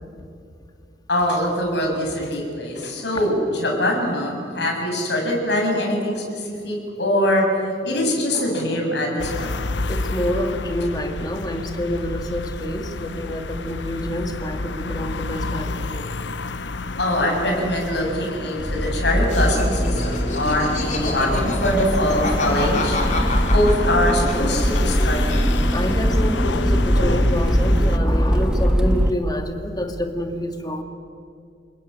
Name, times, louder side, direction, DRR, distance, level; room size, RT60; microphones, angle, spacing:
voice 1, 1.1-9.5 17.0-23.0 23.5-25.4, left 1 dB, 70° left, 1 dB, 7.2 m, -23 dB
sound 1, 9.2-28.0, left 3 dB, 85° left, 1.0 m, -30 dB
voice 2, 9.9-16.1 25.7-30.8, equal, 20° left, 4 dB, 2.4 m, -27 dB
Accelerating revving vroom, 18.6-29.1, equal, 5° right, 1.4 m, -21 dB
Laughter, 19.3-25.0 25.3-26.1, left 3 dB, 45° left, 3.9 m, -29 dB
29.0 x 21.5 x 8.8 m, 2.3 s
head